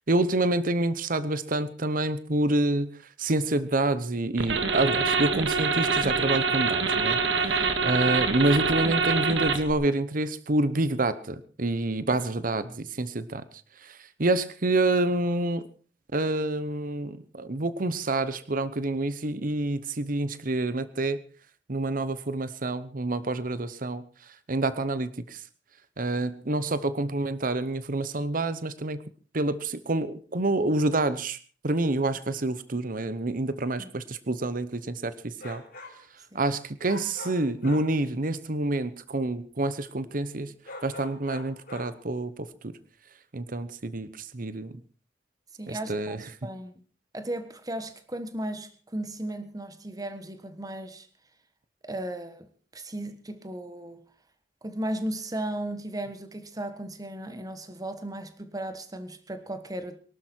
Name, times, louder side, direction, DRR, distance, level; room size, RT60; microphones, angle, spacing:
voice 1, 0.1-7.5 7.8-13.4 13.8-15.6 16.1-21.2 21.7-24.0 24.5-25.4 26.0-29.0 29.3-31.4 31.6-35.6 36.3-40.5 40.8-42.5 43.3-44.8 45.7-46.2, right 2 dB, 50° right, 0.9 m, -27 dB
sound 1, 4.4-9.7, right 4 dB, 90° right, 2.0 m, -25 dB
sound 2, 35.4-36.1 36.8-38.0 40.7-42.0, left 2 dB, 55° left, 3.9 m, -43 dB
voice 2, 45.6-46.7 47.1-51.1 51.8-54.0 54.6-60.0, right 1 dB, 20° right, 1.4 m, -36 dB
23.0 x 12.0 x 4.5 m
head